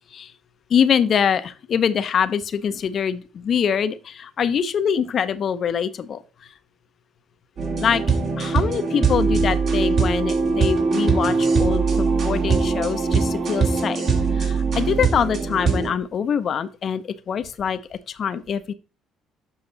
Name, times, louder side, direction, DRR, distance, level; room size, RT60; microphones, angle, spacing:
voice 1, 0.7-6.2 7.8-14.0 14.3-18.7, left 7 dB, 50° left, 13 dB, 0.7 m, -24 dB
sound 1, 7.6-15.9, right 4 dB, 55° right, 2.3 m, -21 dB
7.2 x 5.5 x 3.9 m, 0.34 s
supercardioid pair, 85°, 0 cm